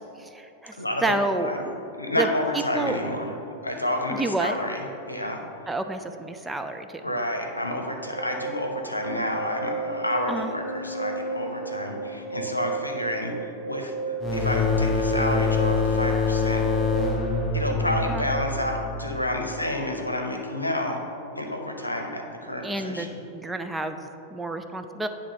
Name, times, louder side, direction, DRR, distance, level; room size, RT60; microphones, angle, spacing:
voice 1, 0.0-1.5 2.2-2.3 2.5-3.0 4.1-4.6 5.7-7.0 10.3-10.5 18.1-18.2 22.6-25.1, right 2 dB, 10° right, 6 dB, 0.4 m, -29 dB
voice 2, 0.8-1.2 1.4-1.7 2.0-5.4 7.0-13.3 13.6-16.6 17.5-21.0 21.4-23.2, left 1 dB, 85° left, 3 dB, 0.7 m, -29 dB
sound 1, 8.2-18.3, right 4 dB, 75° right, 0.7 m, -34 dB
sound 2, 14.2-19.6, left 4 dB, 15° left, 0.8 m, -25 dB
9.6 x 3.5 x 5.4 m, 3.0 s
figure-of-eight pair, 90°, 0 cm